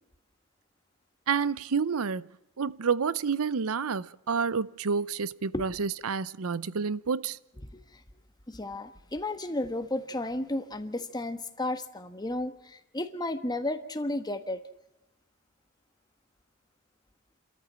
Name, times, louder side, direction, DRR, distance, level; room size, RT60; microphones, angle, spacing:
voice 1, 1.3-2.3 2.6-7.4, right 5 dB, 70° right, 0.6 m, -29 dB
voice 2, 8.5-14.6, left 1 dB, 20° left, 1.3 m, -33 dB
28.0 x 14.0 x 7.5 m
head